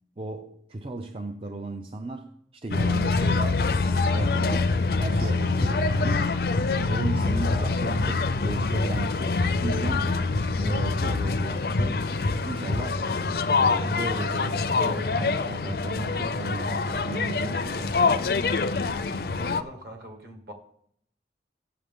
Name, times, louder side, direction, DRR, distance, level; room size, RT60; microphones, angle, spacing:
voice 1, 0.2-6.2 6.9-10.1 10.6-12.1 12.4-13.0 13.5-18.0, right 2 dB, 30° right, 0.5 m, -35 dB
sound 1, 2.7-19.6, left 3 dB, 55° left, 0.5 m, -25 dB
voice 2, 5.1-5.7 19.4-20.5, right 1 dB, 55° right, 2.0 m, -44 dB
15.0 x 7.5 x 3.7 m
head